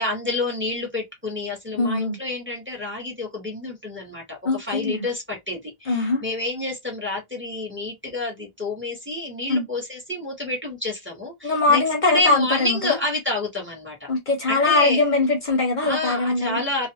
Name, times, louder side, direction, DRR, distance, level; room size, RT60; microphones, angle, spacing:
voice 1, 0.0-14.1 14.5-15.0 15.8-16.9, left 2 dB, 10° right, 0.9 m, -28 dB
voice 2, 1.8-2.1 4.5-5.0 5.9-6.2 9.5-9.6 11.4-13.0 14.1-16.6, left 3 dB, 55° left, 0.8 m, -21 dB
2.5 x 2.2 x 2.7 m
omnidirectional pair, 1.0 m